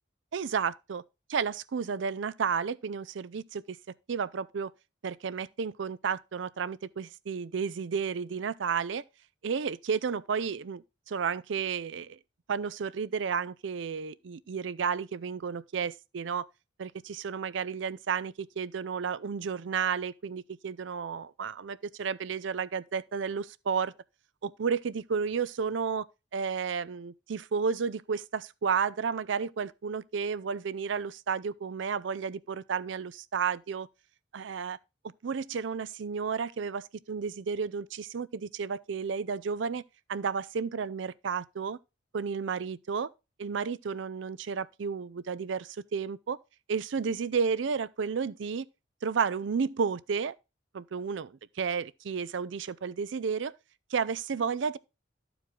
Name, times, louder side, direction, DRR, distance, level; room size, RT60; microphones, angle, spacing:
voice 1, 0.3-1.0 1.3-3.8 4.1-4.7 5.0-9.0 9.4-12.2 12.5-16.5 16.8-23.9 24.4-26.1 26.3-33.9 34.3-34.8 35.2-39.8 40.1-41.8 42.1-43.1 43.4-46.4 46.7-48.7 49.0-50.3 50.7-53.5 53.9-54.8, right 6 dB, 70° right, 0.4 m, -32 dB
12.5 x 4.7 x 3.7 m
head